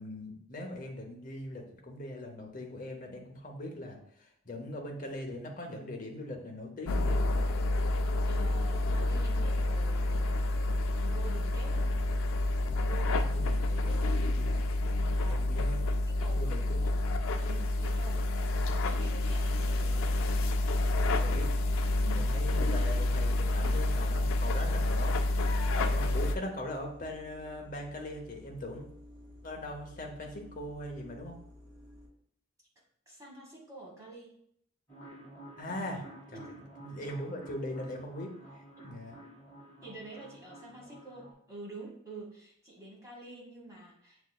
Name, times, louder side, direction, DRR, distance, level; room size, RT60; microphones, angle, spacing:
voice 1, 0.0-7.2 13.3-13.8 14.4-14.6 15.3-15.8 16.3-16.8 21.2-21.5 22.1-25.2 25.7-28.8 29.4-31.3 35.6-36.5 36.8-38.3 38.8-39.2, left 1 dB, 40° left, 1 dB, 0.7 m, -40 dB
sound 1, 6.8-26.3, left 2 dB, 80° left, 0.4 m, -28 dB
voice 2, 8.3-10.4 11.0-11.9 12.8-13.4 13.8-14.2 15.1-15.5 16.1-16.6 17.4-20.3 22.0-22.3 33.1-34.4 36.3-36.5 39.8-44.2, right 2 dB, 15° right, -4 dB, 1.4 m, -48 dB
sound 2, 26.4-32.1, left 1 dB, 70° right, 1.5 m, -52 dB
sound 3, 34.9-41.3, right 1 dB, 10° left, 1.1 m, -51 dB
7.4 x 2.5 x 2.3 m, 0.67 s
head